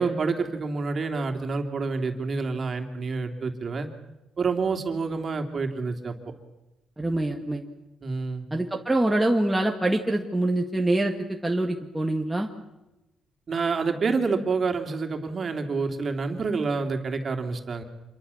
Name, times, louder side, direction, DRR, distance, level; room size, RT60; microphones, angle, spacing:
voice 1, 0.0-3.9 4.4-6.1 8.0-8.5 13.5-17.8, right 4 dB, 40° right, 4 dB, 3.1 m, -28 dB
voice 2, 7.0-7.6 8.5-12.5, right 1 dB, 5° right, 1 dB, 1.8 m, -25 dB
27.0 x 23.5 x 7.2 m, 1.0 s
cardioid pair, 125°, 0 cm